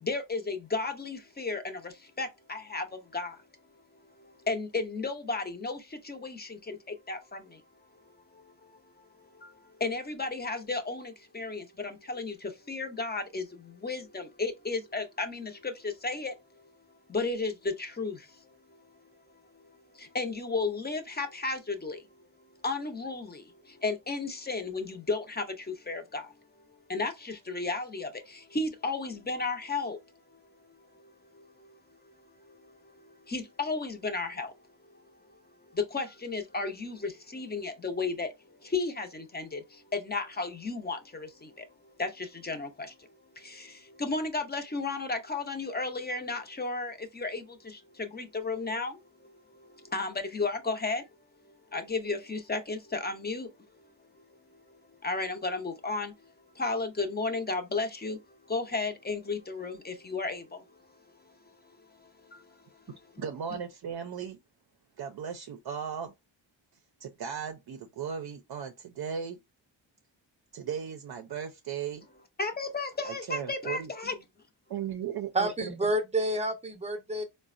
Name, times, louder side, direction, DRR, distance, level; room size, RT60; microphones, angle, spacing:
voice 1, 0.0-3.4 4.2-7.6 8.1-16.7 17.1-18.9 19.5-22.1 22.6-26.3 26.9-30.0 30.3-30.4 30.7-34.5 34.8-51.0 51.4-53.5 53.7-53.8 54.1-54.4 54.7-62.8 72.4-74.2, left 3 dB, 20° left, 0.6 m, -34 dB
voice 2, 63.2-64.4 65.0-66.1 67.0-69.4 70.5-72.1 73.0-73.9 74.7-75.9, right 7 dB, 55° right, 0.5 m, -37 dB
voice 3, 75.3-77.2, right 1 dB, 15° right, 0.6 m, -29 dB
3.9 x 2.1 x 2.4 m
cardioid pair, 90°, 45 cm